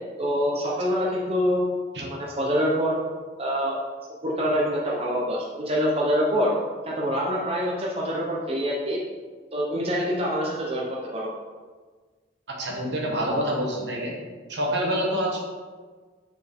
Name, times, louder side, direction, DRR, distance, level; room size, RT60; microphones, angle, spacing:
voice 1, 0.2-1.7 2.0-3.0 3.4-3.8 4.2-6.5 6.8-9.0 9.5-11.3, equal, 35° right, -4 dB, 0.9 m, -25 dB
voice 2, 12.5-14.1 14.5-15.4, equal, 70° right, -1 dB, 1.3 m, -26 dB
6.6 x 4.5 x 3.6 m, 1.4 s
head